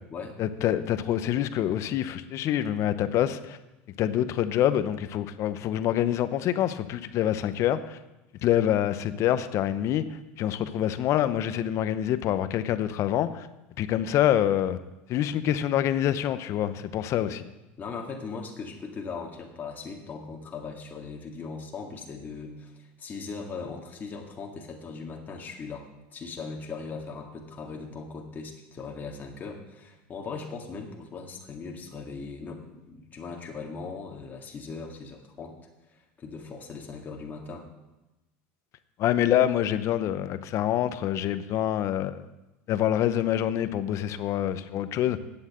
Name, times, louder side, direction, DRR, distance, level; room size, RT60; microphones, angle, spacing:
voice 1, 0.4-3.6 4.0-8.0 8.4-13.5 13.8-14.8 15.1-17.4 39.0-42.2 42.7-45.2, left 11 dB, 50° left, 12 dB, 0.8 m, -26 dB
voice 2, 17.8-35.6 35.9-37.7, left 4 dB, 30° left, 1 dB, 2.0 m, -39 dB
8.9 x 7.8 x 7.5 m, 1.0 s
supercardioid pair, 115°, 6 cm